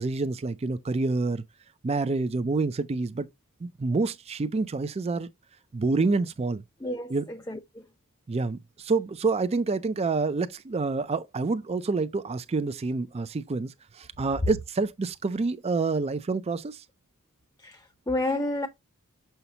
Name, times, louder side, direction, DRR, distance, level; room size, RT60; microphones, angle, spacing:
voice 1, 0.0-1.4 1.8-3.3 3.6-5.3 5.7-6.6 7.1-7.2 8.3-16.8, right 3 dB, 25° right, 0.4 m, -27 dB
voice 2, 6.8-7.8 17.6-18.7, left 2 dB, 15° left, 0.7 m, -31 dB
6.7 x 5.6 x 2.8 m
head